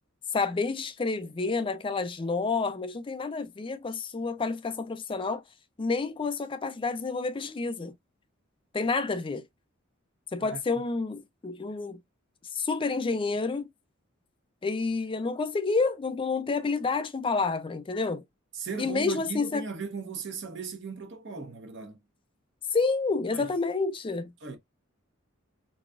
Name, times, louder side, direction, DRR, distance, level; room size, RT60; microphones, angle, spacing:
voice 1, 0.3-5.4 5.8-7.9 8.7-9.4 10.3-12.0 12.5-13.7 14.6-18.2 18.8-19.7 22.7-24.3, left 4 dB, 25° left, 0.4 m, -29 dB
voice 2, 18.5-22.0 23.3-23.5 24.4-24.6, right 4 dB, 60° right, 0.9 m, -37 dB
4.0 x 2.2 x 2.3 m
head